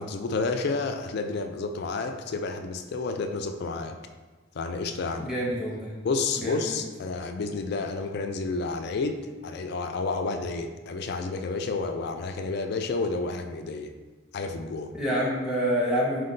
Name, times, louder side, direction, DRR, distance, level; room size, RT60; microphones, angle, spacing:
voice 1, 0.0-4.0 4.5-5.3 6.0-13.9 14.3-14.9, left 3 dB, 50° left, 7 dB, 0.3 m, -30 dB
voice 2, 5.2-5.9 6.4-6.6 14.9-16.2, equal, 5° right, -5 dB, 0.6 m, -27 dB
5.2 x 2.2 x 3.8 m, 1.3 s
head